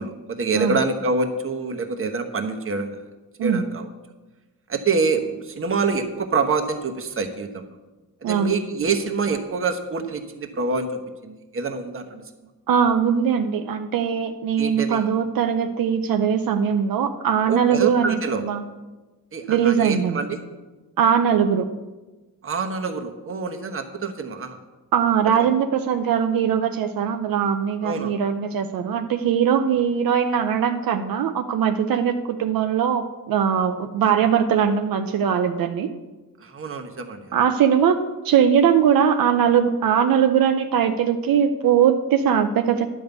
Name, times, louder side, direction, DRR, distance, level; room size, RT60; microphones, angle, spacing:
voice 1, 0.0-3.0 3.4-3.9 4.7-7.7 8.3-12.2 14.6-15.1 17.5-18.4 19.3-20.4 22.4-24.6 25.4-25.5 27.8-28.2 36.4-37.4, right 4 dB, 40° right, 6 dB, 1.1 m, -26 dB
voice 2, 8.2-8.6 12.7-18.6 19.5-20.2 21.0-21.7 24.9-35.9 37.3-38.0 38.2-42.9, right 8 dB, 75° right, 7 dB, 0.7 m, -20 dB
11.0 x 5.3 x 8.1 m, 1.2 s
wide cardioid pair, 130°, 35 cm